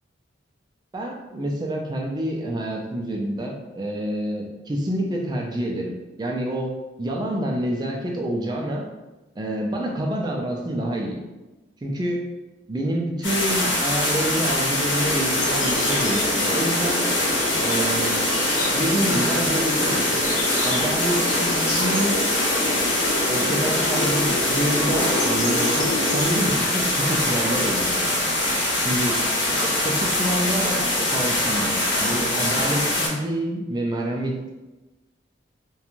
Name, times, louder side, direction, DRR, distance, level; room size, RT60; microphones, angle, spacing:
voice 1, 0.9-8.8 9.4-11.2 11.8-12.3 12.7-17.1 17.6-18.3 18.7-20.0 20.6-22.3 23.3-28.1 28.8-29.2 29.6-34.5, right 1 dB, 20° right, 0 dB, 0.3 m, -27 dB
sound 1, 13.2-33.1, left 1 dB, 85° left, 1.0 m, -23 dB
sound 2, 14.9-26.2, left 1 dB, 40° left, 0.5 m, -28 dB
2.5 x 2.2 x 2.9 m, 1.1 s
head